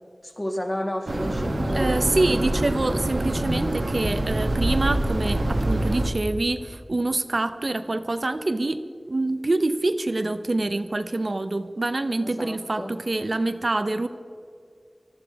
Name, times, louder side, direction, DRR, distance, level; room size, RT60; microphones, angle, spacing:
voice 1, 0.2-2.1 12.2-13.0, left 1 dB, 25° left, 4 dB, 1.7 m, -31 dB
sound 1, 1.1-6.1, right 1 dB, 85° right, 1.5 m, -25 dB
voice 2, 1.7-14.1, right 2 dB, 60° right, 10 dB, 0.7 m, -26 dB
20.5 x 12.5 x 4.7 m, 2.4 s
wide cardioid pair, 55°, 0 cm